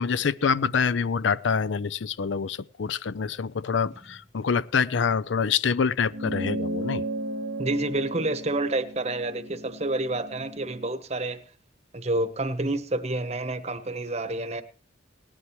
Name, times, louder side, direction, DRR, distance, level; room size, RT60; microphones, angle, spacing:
voice 1, 0.0-7.0, left 6 dB, 65° left, 0.5 m, -26 dB
sound 1, 6.1-10.9, right 1 dB, 80° right, 1.3 m, -34 dB
voice 2, 7.6-11.4 11.9-14.6, right 2 dB, 35° right, 1.0 m, -29 dB
18.5 x 11.5 x 3.1 m
head